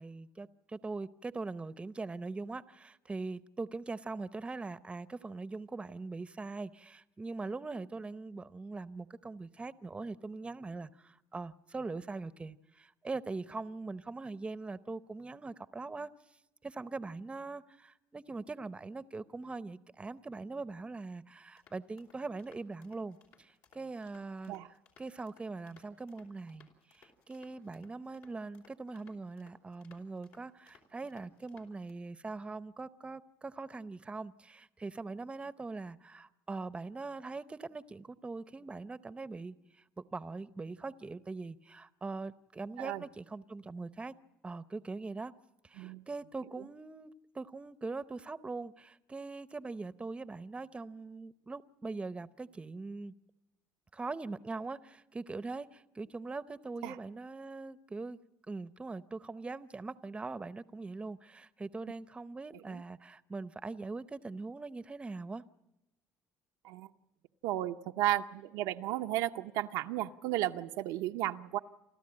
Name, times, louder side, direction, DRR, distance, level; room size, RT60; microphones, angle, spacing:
voice 1, 0.0-16.1 16.6-39.5 40.0-44.1 44.4-45.3 45.6-53.1 53.9-58.2 58.5-65.4, right 3 dB, 20° right, 0.7 m, -42 dB
sound 1, 21.6-31.9, left 5 dB, 75° left, 4.1 m, -64 dB
voice 2, 67.4-71.6, right 14 dB, 85° right, 0.7 m, -34 dB
29.0 x 13.5 x 8.7 m
cardioid pair, 95°, 6 cm